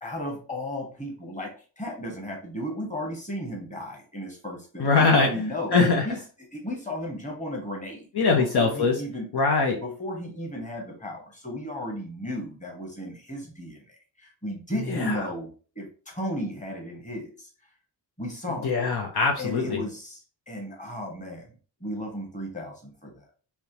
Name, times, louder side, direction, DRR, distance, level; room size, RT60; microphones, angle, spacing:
voice 1, 0.0-5.8 6.0-6.2 6.5-8.1 8.4-9.2 9.8-13.8 14.2-15.5 15.7-17.5 18.2-18.7 19.4-20.2 20.5-21.5 21.8-23.2, left 1 dB, 15° left, 0 dB, 1.3 m, -34 dB
voice 2, 4.8-6.1 8.1-9.0 9.3-9.8 14.7-15.3 18.5-19.9, left 4 dB, 60° left, 1 dB, 0.7 m, -23 dB
3.4 x 2.9 x 2.8 m, 0.38 s
cardioid pair, 85°, 44 cm